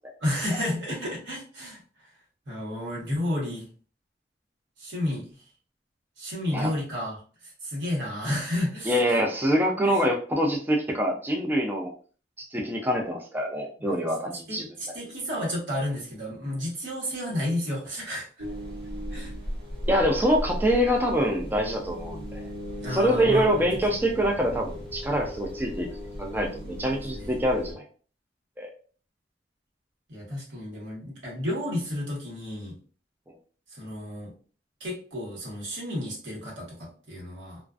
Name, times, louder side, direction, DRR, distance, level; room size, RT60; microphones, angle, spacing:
voice 1, 0.2-1.8 2.5-3.7 4.8-5.3 6.2-7.2 7.4-9.2 9.8-10.0 13.8-13.9 14.5-18.2 19.1-19.3 22.8-23.6 27.1-27.4 30.1-32.8 33.8-34.3 34.8-37.6, left 1 dB, 85° right, -3 dB, 1.1 m, -31 dB
voice 2, 8.9-11.9 12.5-14.7 19.9-22.5 22.9-25.9 26.2-27.8 28.6-28.7, equal, 10° right, 1 dB, 0.3 m, -25 dB
sound 1, 18.4-27.7, equal, 65° right, 1.0 m, -37 dB
2.4 x 2.3 x 2.3 m, 0.40 s
head